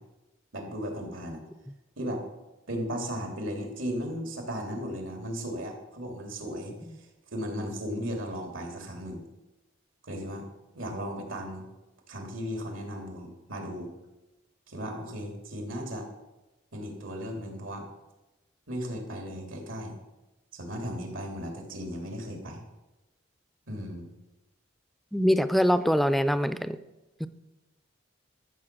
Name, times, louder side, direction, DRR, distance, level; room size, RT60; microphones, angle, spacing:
voice 1, 0.5-1.4 2.0-2.2 2.7-6.7 7.3-9.2 10.0-10.5 10.7-11.7 12.1-13.9 14.7-16.1 16.7-17.8 18.7-20.0 20.5-22.6 23.7-24.1, equal, 85° right, 3 dB, 3.0 m, -36 dB
voice 2, 25.1-26.8 27.2-27.3, equal, ahead, 13 dB, 0.4 m, -24 dB
13.5 x 7.0 x 6.1 m, 1.1 s
head